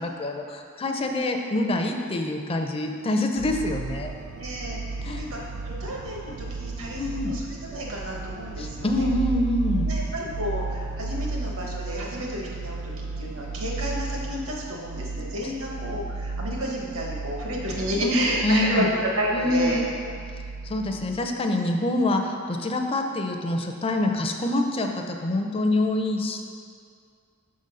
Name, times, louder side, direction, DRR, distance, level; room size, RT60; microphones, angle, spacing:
voice 1, 0.0-4.1 5.0-5.2 7.0-7.3 8.6-9.9 15.4-15.5 18.0-18.9 19.3-19.9 20.6-26.4, left 1 dB, 25° left, 4 dB, 0.4 m, -26 dB
sound 1, 3.4-21.3, right 3 dB, 50° right, 0.3 m, -34 dB
voice 2, 4.3-5.4 5.6-7.4 7.7-9.1 9.8-18.9 19.1-19.8, equal, 70° right, -2 dB, 1.2 m, -31 dB
6.0 x 3.8 x 5.4 m, 2.3 s
head